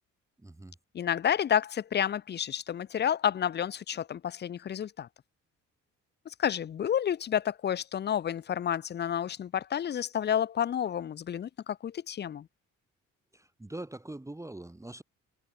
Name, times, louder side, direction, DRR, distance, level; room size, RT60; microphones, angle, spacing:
voice 1, 0.4-0.8 13.3-15.0, right 1 dB, 10° right, 1.6 m, -43 dB
voice 2, 0.9-5.1 6.3-12.5, left 9 dB, 35° left, 0.5 m, -30 dB
cardioid pair, 90°, 30 cm